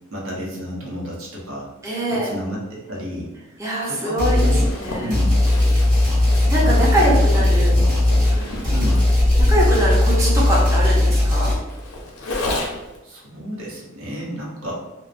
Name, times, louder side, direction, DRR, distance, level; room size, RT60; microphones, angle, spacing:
voice 1, 0.1-1.7 2.1-4.7 5.0-5.5 6.6-8.0 8.7-9.1 13.0-14.7, equal, 85° right, -3 dB, 0.8 m, -31 dB
voice 2, 1.8-2.3 3.6-5.1 6.5-7.7 8.3-8.5 9.4-11.5, right 1 dB, 15° right, -6 dB, 0.5 m, -23 dB
sound 1, 4.2-4.7 5.1-11.6, left 1 dB, 40° right, 1.5 m, -17 dB
Zipper (clothing), 4.3-13.0, left 1 dB, 80° left, 0.6 m, -31 dB
2.8 x 2.0 x 2.4 m, 1.0 s
head